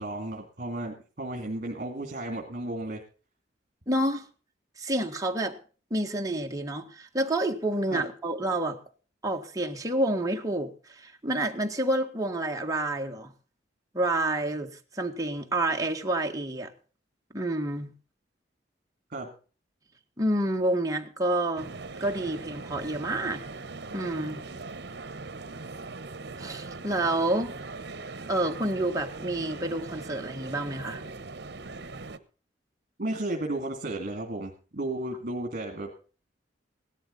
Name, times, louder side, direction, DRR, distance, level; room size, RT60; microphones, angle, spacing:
voice 1, 0.0-3.0 7.9-8.0 19.1-19.3 33.0-35.9, right 2 dB, 50° right, 2.6 m, -33 dB
voice 2, 3.9-4.2 4.8-5.6 5.9-8.8 9.2-13.3 13.9-16.7 17.3-17.9 20.2-21.7 22.0-23.4 23.9-24.4 26.4-27.5 28.3-31.0, right 1 dB, 20° right, 1.6 m, -29 dB
sound 1, 21.6-32.2, right 3 dB, 65° right, 1.1 m, -40 dB
17.5 x 12.5 x 4.0 m
head